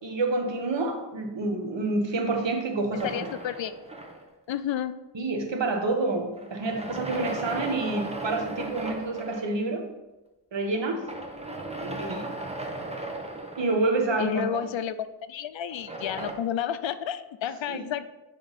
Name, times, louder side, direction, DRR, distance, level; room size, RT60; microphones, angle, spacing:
voice 1, 0.0-3.3 5.1-9.8 10.5-11.0 11.8-12.3 13.6-14.6 17.7-17.8, right 2 dB, 75° right, 3 dB, 1.2 m, -28 dB
voice 2, 3.0-3.8 4.5-4.9 14.2-14.9 15.3-18.1, left 9 dB, 90° left, 13 dB, 0.5 m, -31 dB
sound 1, 3.0-4.5 6.4-9.5 11.0-14.2 15.7-16.3, right 1 dB, 15° right, 0.9 m, -36 dB
10.0 x 3.6 x 4.1 m, 1.0 s
wide cardioid pair, 90°, 44 cm